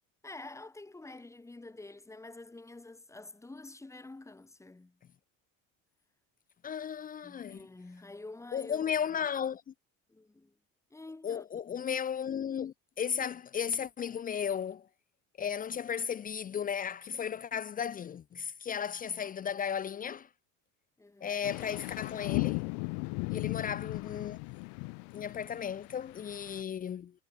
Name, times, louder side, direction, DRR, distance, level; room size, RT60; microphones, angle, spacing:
voice 1, 0.2-5.0 7.2-8.9 10.1-10.6 10.9-11.5 21.0-21.5, left 2 dB, 10° left, 5.2 m, -48 dB
voice 2, 6.6-7.6 8.5-9.6 11.2-14.9 15.4-20.3 21.2-22.6 23.3-24.4 25.1-27.1, left 8 dB, 25° left, 0.8 m, -35 dB
sound 1, 21.4-26.6, left 35 dB, 85° left, 0.7 m, -36 dB
cardioid pair, 170°, 34 cm